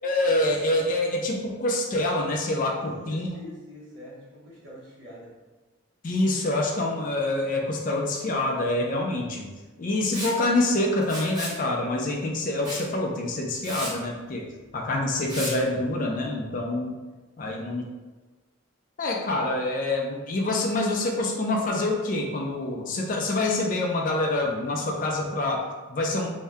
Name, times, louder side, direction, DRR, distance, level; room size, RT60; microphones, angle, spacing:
voice 1, 0.0-3.3 6.0-9.5 9.8-17.0 17.4-17.8 19.0-26.3, left 2 dB, 40° left, 0 dB, 0.3 m, -26 dB
voice 2, 2.8-5.3 17.4-17.8, left 1 dB, 60° right, -6 dB, 0.9 m, -45 dB
Liquid, 10.1-10.4 11.0-11.6 12.6-12.9 13.3-13.4 13.6-13.9 15.3-15.5, equal, 20° right, 0.8 m, -34 dB
2.7 x 2.1 x 3.4 m, 1.2 s
head